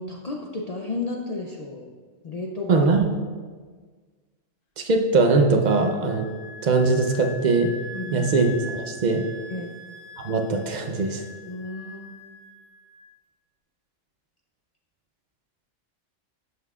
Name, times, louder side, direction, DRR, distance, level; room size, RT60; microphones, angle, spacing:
voice 1, 0.0-1.9 2.2-2.9 7.9-8.3 9.5-9.7 11.5-12.1, left 2 dB, 50° left, 0 dB, 0.4 m, -32 dB
voice 2, 2.7-3.1 4.8-6.3 6.6-7.7 8.1-9.2 10.2-11.2, right 3 dB, 45° right, 4 dB, 0.6 m, -21 dB
Wind instrument woodwind instrument, 5.6-13.1, left 2 dB, 80° left, 1.0 m, -42 dB
11.0 x 5.6 x 2.4 m, 1.5 s
omnidirectional pair, 1.3 m